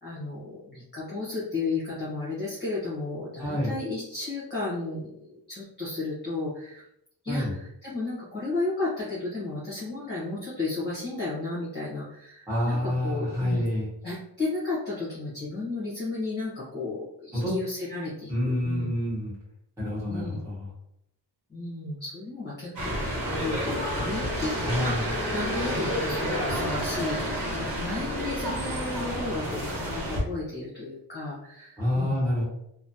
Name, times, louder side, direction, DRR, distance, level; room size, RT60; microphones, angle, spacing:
voice 1, 0.0-6.8 7.2-13.6 14.0-18.9 20.1-20.4 21.5-27.2 27.8-32.1, left 3 dB, 25° left, -9 dB, 1.0 m, -33 dB
voice 2, 3.4-3.7 7.3-7.5 12.5-13.9 17.3-17.5 18.3-19.3 19.8-20.7 24.6-25.0 31.8-32.4, left 1 dB, 5° right, -9 dB, 1.4 m, -27 dB
sound 1, 22.8-30.2, equal, 50° right, 1.0 m, -30 dB
3.0 x 2.1 x 2.6 m, 0.76 s
wide cardioid pair, 150°, 42 cm